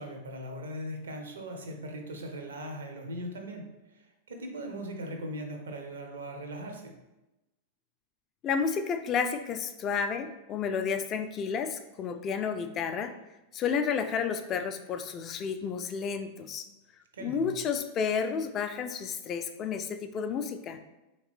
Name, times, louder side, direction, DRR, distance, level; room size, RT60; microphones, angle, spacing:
voice 1, 0.0-7.0 17.1-17.6, equal, 65° right, 4 dB, 0.6 m, -39 dB
voice 2, 8.4-13.1 13.5-16.6 17.2-20.8, left 6 dB, 30° left, 8 dB, 0.3 m, -31 dB
3.7 x 2.9 x 3.0 m, 0.98 s
figure-of-eight pair, 90°, 0 cm